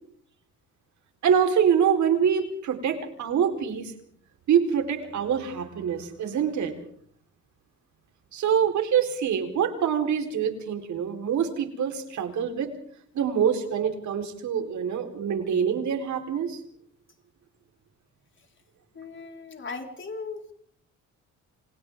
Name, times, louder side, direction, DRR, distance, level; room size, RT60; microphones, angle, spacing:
voice 1, 1.2-3.9 4.5-6.8 8.3-12.7 13.1-16.6, right 8 dB, 70° right, 5 dB, 4.2 m, -25 dB
voice 2, 18.9-20.5, left 4 dB, 40° left, 2 dB, 4.7 m, -37 dB
28.0 x 28.0 x 3.7 m, 0.62 s
cardioid pair, 90°, 30 cm